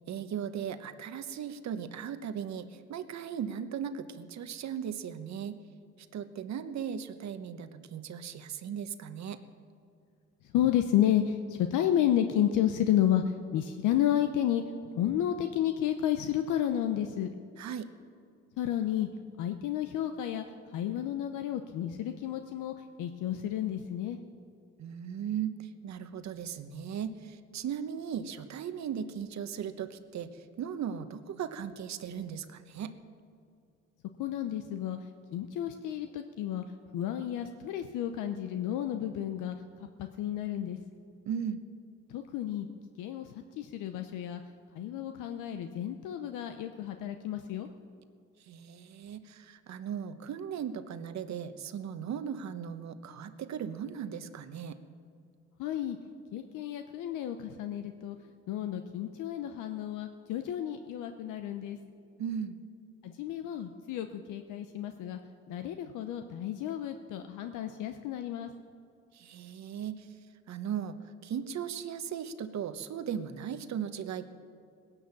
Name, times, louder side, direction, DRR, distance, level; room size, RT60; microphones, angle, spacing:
voice 1, 0.1-5.6 6.1-9.4 17.6-17.9 24.8-32.9 41.2-41.6 48.5-54.8 62.2-62.6 69.1-70.1 70.5-71.0 71.2-74.3, right 8 dB, 65° right, 10 dB, 1.1 m, -37 dB
voice 2, 10.5-14.6 15.0-17.3 18.6-19.1 19.4-20.4 20.7-24.2 34.2-35.0 35.3-36.6 36.9-39.5 40.0-40.8 42.1-42.7 43.0-44.4 44.7-47.7 55.6-56.0 56.3-58.2 58.5-61.8 63.0-65.2 65.5-68.5, left 11 dB, 90° left, 7 dB, 0.7 m, -31 dB
18.5 x 11.0 x 7.2 m, 2.4 s
cardioid pair, 90°, 30 cm